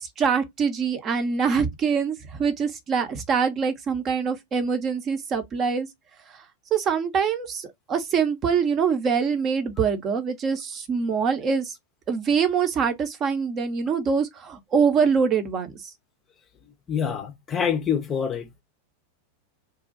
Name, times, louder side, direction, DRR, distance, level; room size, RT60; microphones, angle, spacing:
voice 1, 0.0-5.9 6.7-11.7 12.1-15.7, right 6 dB, 30° right, 0.8 m, -24 dB
voice 2, 16.9-18.5, left 7 dB, 20° left, 0.6 m, -26 dB
2.6 x 2.3 x 3.8 m
figure-of-eight pair, 90°, 0 cm